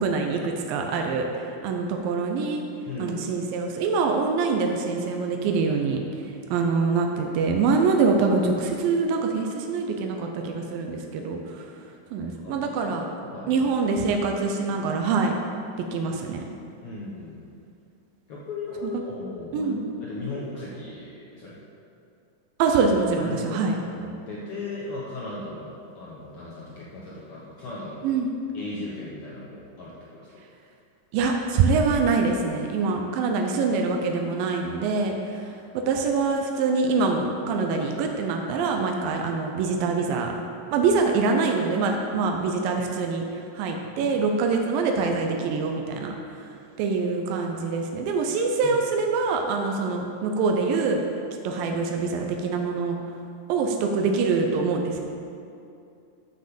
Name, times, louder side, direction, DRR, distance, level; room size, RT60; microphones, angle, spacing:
voice 1, 0.0-2.6 3.0-6.0 6.5-11.7 12.1-13.0 13.5-15.4 15.9-16.4 18.8-18.9 19.5-19.9 22.6-23.8 28.0-28.3 31.1-40.3 40.7-46.1 46.8-51.0 51.4-53.0 53.5-55.0, right 4 dB, 90° right, 2 dB, 2.5 m, -24 dB
voice 2, 2.9-3.2 12.2-13.7 16.8-17.5 18.3-21.6 23.2-23.6 23.9-28.0 28.5-30.4 43.9-44.2 48.6-48.8, left 2 dB, 65° left, -6 dB, 1.5 m, -37 dB
7.8 x 6.3 x 6.9 m, 2.5 s
omnidirectional pair, 3.9 m